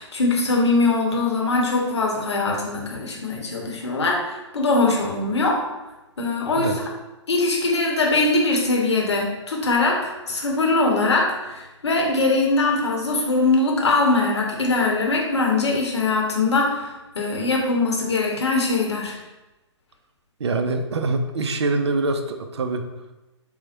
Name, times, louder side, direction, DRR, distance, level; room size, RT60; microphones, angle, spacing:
voice 1, 0.0-5.6 6.2-6.7 7.3-16.9 17.1-19.2, left 3 dB, 65° left, 0 dB, 0.8 m, -21 dB
voice 2, 20.4-22.9, right 3 dB, 65° right, 7 dB, 0.4 m, -24 dB
4.2 x 2.1 x 2.7 m, 1.0 s
figure-of-eight pair, 120°, 15 cm